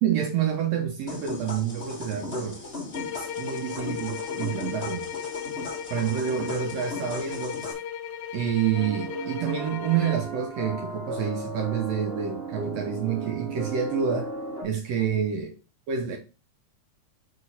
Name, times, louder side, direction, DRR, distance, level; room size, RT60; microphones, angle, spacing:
voice 1, 0.0-2.6 3.1-5.1 5.9-7.7 8.3-14.3 14.6-15.5 15.9-16.2, right 8 dB, 70° right, 1.7 m, -28 dB
sound 1, 1.1-7.7, left 2 dB, 55° left, 0.6 m, -37 dB
sound 2, 2.9-10.3, left 9 dB, 75° left, 1.9 m, -36 dB
sound 3, 8.7-14.6, right 3 dB, 20° right, 2.7 m, -35 dB
4.9 x 4.7 x 4.1 m
omnidirectional pair, 3.6 m